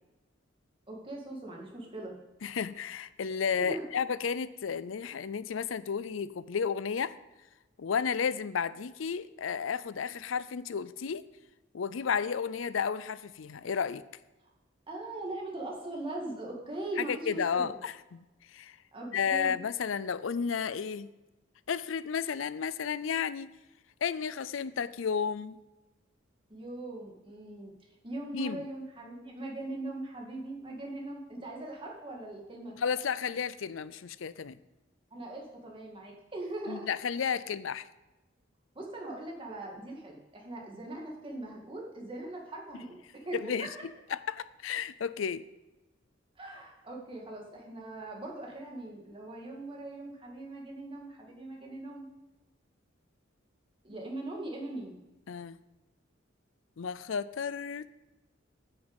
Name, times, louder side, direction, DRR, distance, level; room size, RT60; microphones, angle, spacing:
voice 1, 0.9-2.1 3.6-3.8 14.9-17.7 18.9-19.6 26.5-27.7 28.0-32.8 35.1-36.9 38.8-43.0 43.3-43.8 46.4-52.1 53.8-55.0, right 2 dB, 25° right, -1 dB, 2.3 m, -40 dB
voice 2, 2.4-7.1 7.8-11.2 11.7-14.0 17.0-18.2 18.5-18.8 19.1-21.1 21.7-23.5 24.0-25.6 28.3-28.6 32.8-34.6 36.7-37.9 43.3-43.7 44.1-45.4 55.3-55.6 56.8-57.9, left 6 dB, 85° left, 16 dB, 0.5 m, -32 dB
9.1 x 6.7 x 8.1 m, 1.0 s
head